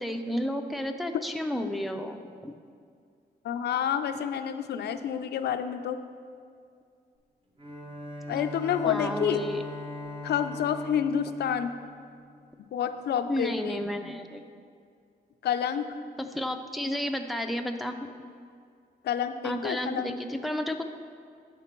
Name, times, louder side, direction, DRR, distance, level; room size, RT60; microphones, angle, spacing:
voice 1, 0.0-2.6 8.9-9.6 13.3-14.4 16.2-18.0 19.4-20.8, left 1 dB, ahead, 5 dB, 0.4 m, -32 dB
voice 2, 3.4-6.0 8.3-9.4 10.2-11.7 12.7-13.8 15.4-15.9 19.0-20.1, left 8 dB, 85° left, 9 dB, 0.4 m, -29 dB
Bowed string instrument, 7.6-12.7, left 2 dB, 35° right, 1.1 m, -40 dB
9.2 x 5.9 x 4.4 m, 2.2 s
wide cardioid pair, 145°, 17 cm